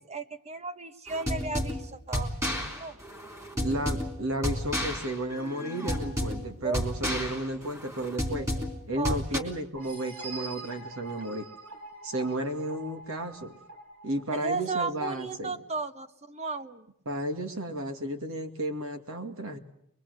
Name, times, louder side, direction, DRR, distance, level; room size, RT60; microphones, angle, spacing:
voice 1, 0.0-2.3 2.7-3.0 6.6-6.8 9.0-9.4 14.3-16.9, right 4 dB, 30° right, 10 dB, 1.1 m, -34 dB
sound 1, 1.1-9.4, equal, 15° right, 3.6 m, -32 dB
voice 2, 3.6-8.5 8.9-11.5 12.0-13.6 14.0-15.5 17.1-19.6, right 1 dB, 65° right, 6 dB, 2.3 m, -33 dB
sound 2, 9.7-15.2, right 3 dB, 85° right, 4.7 m, -45 dB
23.5 x 22.5 x 8.1 m, 0.74 s
head